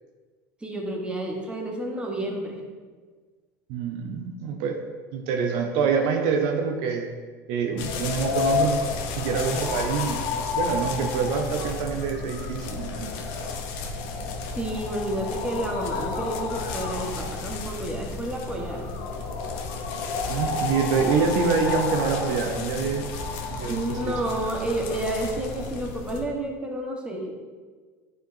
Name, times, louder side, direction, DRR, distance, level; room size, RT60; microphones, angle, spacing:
voice 1, 0.6-2.6 14.5-19.0 23.7-27.3, right 1 dB, 10° right, 0 dB, 1.3 m, -30 dB
voice 2, 3.7-4.8 5.1-7.1 7.5-8.8 9.1-10.2 10.5-13.2 20.3-23.1 23.5-24.1, right 5 dB, 65° right, 3 dB, 0.6 m, -26 dB
sound 1, 7.8-26.2, left 4 dB, 65° left, 0.8 m, -31 dB
9.3 x 4.5 x 2.7 m, 1.5 s
hypercardioid pair, 90°, 9 cm